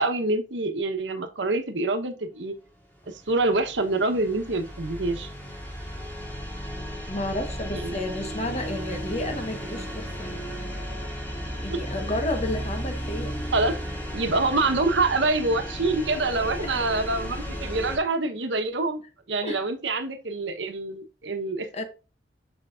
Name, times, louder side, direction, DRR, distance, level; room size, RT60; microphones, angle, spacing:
voice 1, 0.0-2.5 3.1-5.3 7.7-8.0 11.7-11.8 13.5-13.8 14.1-19.0 19.3-21.8, right 2 dB, 90° right, 1.2 m, -26 dB
sound 1, 3.0-18.0, equal, 10° left, 2.4 m, -34 dB
voice 2, 7.1-10.4 11.6-13.3 16.6-16.8 19.4-19.6 21.7-21.8, left 1 dB, 40° left, 1.3 m, -31 dB
7.8 x 5.5 x 2.5 m
head